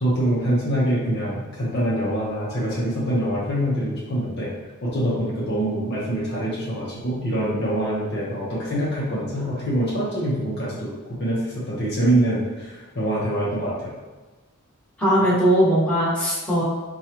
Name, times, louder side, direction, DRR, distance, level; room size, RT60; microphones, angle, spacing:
voice 1, 0.0-4.5 4.8-13.9, right 1 dB, 50° left, -6 dB, 0.8 m, -24 dB
voice 2, 15.0-16.6, equal, 5° left, -10 dB, 1.2 m, -19 dB
4.6 x 2.3 x 2.9 m, 1.2 s
head